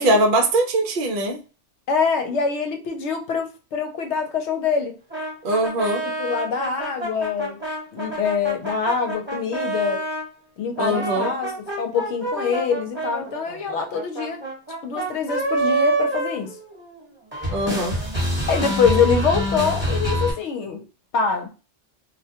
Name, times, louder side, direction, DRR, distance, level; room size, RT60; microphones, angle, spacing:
voice 1, 0.0-1.4 5.4-6.0 10.8-11.3 17.5-18.0, right 1 dB, 60° right, 0.6 m, -21 dB
voice 2, 1.9-4.9 6.0-7.6 7.9-10.0 10.6-14.4 14.8-16.6 18.5-20.8 21.1-21.5, left 5 dB, 75° left, 0.9 m, -24 dB
sound 1, 5.1-10.3 10.7-17.0 17.3-20.3, right 1 dB, 10° right, 1.0 m, -27 dB
2.2 x 2.2 x 2.7 m
omnidirectional pair, 1.2 m